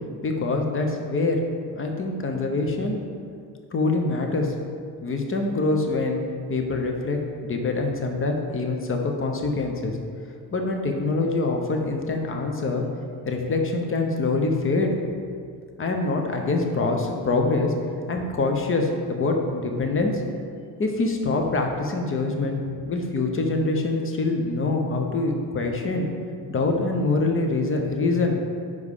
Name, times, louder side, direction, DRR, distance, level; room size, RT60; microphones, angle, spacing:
voice 1, 0.2-1.4 1.8-3.0 3.7-4.5 5.0-6.2 6.5-10.0 10.5-12.8 13.2-15.0 15.8-17.7 18.1-20.2 20.8-22.6 22.9-26.1 26.5-28.4, left 3 dB, 30° left, 3 dB, 1.0 m, -25 dB
4.8 x 4.7 x 5.5 m, 2.2 s
supercardioid pair, 80°, 44 cm